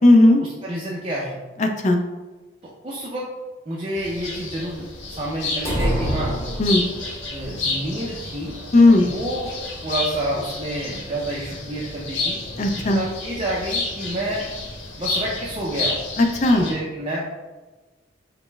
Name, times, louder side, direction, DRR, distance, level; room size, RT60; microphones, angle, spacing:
voice 1, 0.0-0.4 1.6-2.0 6.6-6.8 8.7-9.1 12.6-13.0 16.2-16.6, left 2 dB, 40° left, 4 dB, 0.4 m, -15 dB
voice 2, 0.6-1.4 2.8-3.3 3.7-6.3 7.0-8.6 9.0-9.5 9.8-12.4 12.9-14.5 15.0-16.0 16.6-17.3, right 1 dB, 30° right, -5 dB, 0.5 m, -29 dB
sound 1, 4.0-16.7, left 3 dB, 75° left, 1.1 m, -31 dB
sound 2, 5.6-7.2, equal, 15° left, 1.1 m, -25 dB
5.1 x 2.1 x 3.3 m, 1.2 s
head